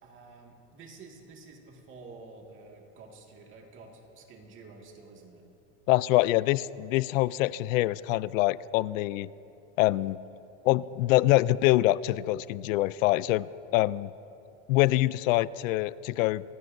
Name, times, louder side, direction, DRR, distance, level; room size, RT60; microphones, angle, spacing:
voice 1, 0.0-5.4, right 3 dB, 30° right, 0 dB, 2.0 m, -50 dB
voice 2, 5.9-9.3 9.8-10.2 10.6-14.1 14.7-16.4, left 17 dB, 70° left, 19 dB, 0.5 m, -25 dB
26.0 x 16.5 x 2.7 m, 2.9 s
supercardioid pair, 160°, 40 cm